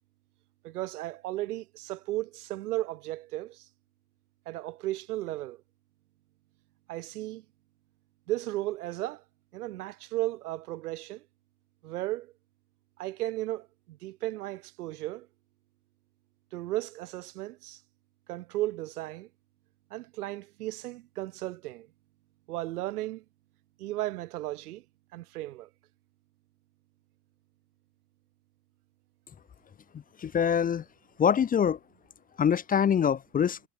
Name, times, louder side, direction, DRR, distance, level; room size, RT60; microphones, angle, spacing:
voice 1, 0.6-3.7 4.5-5.6 6.9-7.4 8.3-9.2 9.5-11.2 11.8-12.3 13.0-15.3 16.5-17.8 18.3-19.3 19.9-21.9 22.5-23.2 23.8-24.8 25.1-25.7, right 16 dB, 90° right, 2.1 m, -35 dB
voice 2, 30.2-30.8 31.2-31.8 32.4-33.6, left 8 dB, 20° left, 0.8 m, -24 dB
supercardioid pair, 130°, 44 cm